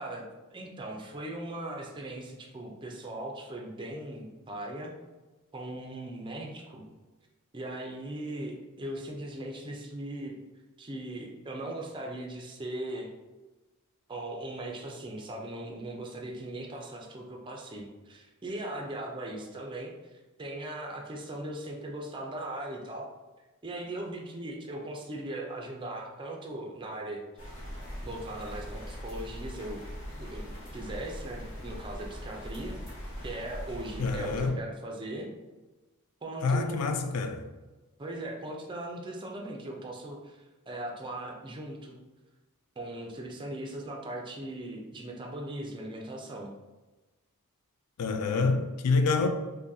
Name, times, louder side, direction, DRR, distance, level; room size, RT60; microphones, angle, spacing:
voice 1, 0.0-4.9 5.5-6.8 7.5-10.4 10.8-13.1 14.1-23.1 23.6-27.2 28.0-29.8 30.2-32.8 33.2-35.3 36.2-36.9 38.0-42.0 42.8-46.5, right 1 dB, 20° right, 0.4 m, -39 dB
sound 1, 27.4-34.5, equal, 60° left, 1.2 m, -41 dB
voice 2, 34.0-34.6 36.4-37.5 48.0-49.3, left 4 dB, 90° left, 0.4 m, -27 dB
3.8 x 2.6 x 2.6 m
head